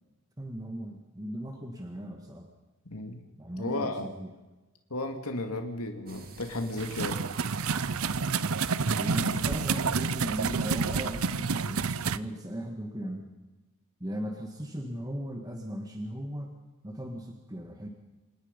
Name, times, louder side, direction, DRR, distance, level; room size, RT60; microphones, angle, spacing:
voice 1, 0.4-2.5 3.4-4.3 8.9-13.3 14.0-16.5 16.8-17.9, right 1 dB, 15° right, 3 dB, 1.8 m, -37 dB
voice 2, 2.9-3.2 3.6-4.1 4.9-7.2, left 2 dB, 85° left, 5 dB, 2.4 m, -34 dB
sound 1, 6.1-11.4, right 4 dB, 45° right, 2.1 m, -50 dB
sound 2, 6.8-12.2, right 5 dB, 70° right, 0.7 m, -29 dB
27.0 x 19.5 x 5.4 m, 1.1 s
head